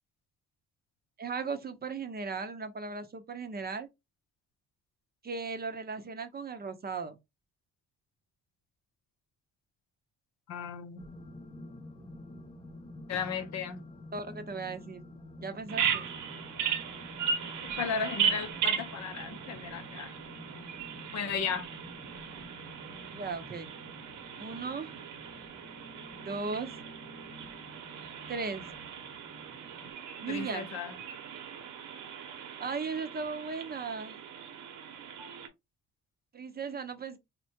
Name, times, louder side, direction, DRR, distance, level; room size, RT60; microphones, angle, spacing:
voice 1, 1.2-3.9 5.2-7.2 14.1-15.0 15.4-16.1 23.1-23.8 24.4-24.9 26.2-26.7 28.3-28.7 30.2-30.7 32.6-34.2 36.3-37.2, right 4 dB, 30° right, 0.6 m, -37 dB
voice 2, 10.5-11.0 13.1-13.8 17.8-20.1 21.1-21.7 30.3-31.0, left 6 dB, 65° left, 0.7 m, -35 dB
sound 1, 11.0-29.9, left 1 dB, 15° left, 0.6 m, -49 dB
Bird vocalization bird call bird song, 15.7-35.5, right 7 dB, 80° right, 0.8 m, -37 dB
3.5 x 2.2 x 2.7 m
cardioid pair, 90°, 30 cm